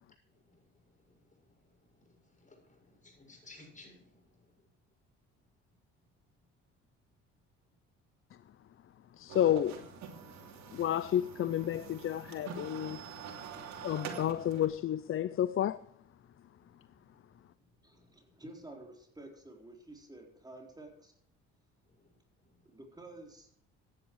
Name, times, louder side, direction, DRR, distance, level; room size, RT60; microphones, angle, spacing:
voice 1, 0.2-4.7 16.6-18.4 21.8-22.8 23.1-23.2, left 2 dB, 25° left, 6.9 m, -61 dB
voice 2, 9.1-9.8 10.7-13.0 13.8-15.9, left 11 dB, 45° left, 0.6 m, -31 dB
sound 1, 9.3-14.7, right 7 dB, 70° right, 2.9 m, -45 dB
voice 3, 17.8-21.1 22.7-23.5, right 2 dB, 15° right, 4.2 m, -51 dB
15.5 x 10.0 x 4.8 m
supercardioid pair, 85°, 29 cm